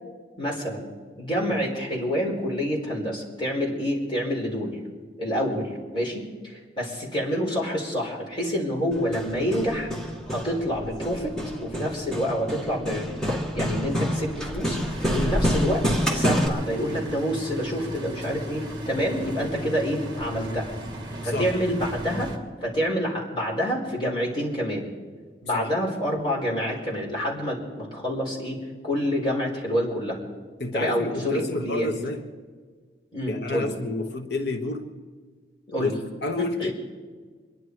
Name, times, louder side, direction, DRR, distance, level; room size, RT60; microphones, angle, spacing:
voice 1, 0.4-0.9 1.2-4.8 5.2-13.1 13.5-20.7 21.2-22.3 22.6-24.9 25.4-28.6 28.8-30.2 30.7-31.9 33.1-33.7 35.7-35.9 36.6-36.7, equal, 25° left, -3 dB, 4.5 m, -27 dB
Hammer, 8.9-16.5, equal, 5° left, 1.9 m, -28 dB
sound 1, 14.9-22.4, right 1 dB, 25° right, 2.1 m, -36 dB
voice 2, 21.2-21.6 25.5-25.7 30.6-32.2 33.3-34.9 35.8-35.9 36.2-36.7, left 2 dB, 70° left, 3 dB, 1.2 m, -29 dB
25.5 x 11.0 x 4.8 m, 1.6 s
head